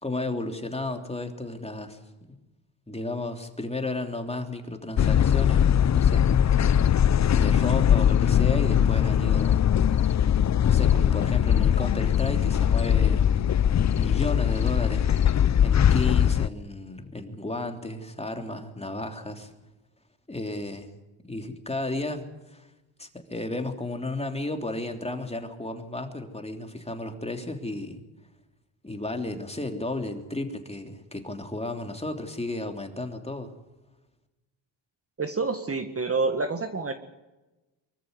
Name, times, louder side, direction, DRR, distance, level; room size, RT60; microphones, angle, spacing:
voice 1, 0.0-2.4 2.9-6.6 7.3-9.7 10.7-13.5 13.9-15.1 15.6-19.5 20.3-20.9 21.2-22.7 23.0-28.0 28.8-33.5, left 2 dB, 15° left, 5 dB, 3.3 m, -33 dB
sound 1, 5.0-16.5, left 9 dB, 35° left, 0.7 m, -21 dB
voice 2, 35.2-36.9, right 3 dB, 30° right, 8 dB, 1.8 m, -28 dB
24.0 x 14.0 x 9.5 m, 1.1 s
cardioid pair, 80°, 47 cm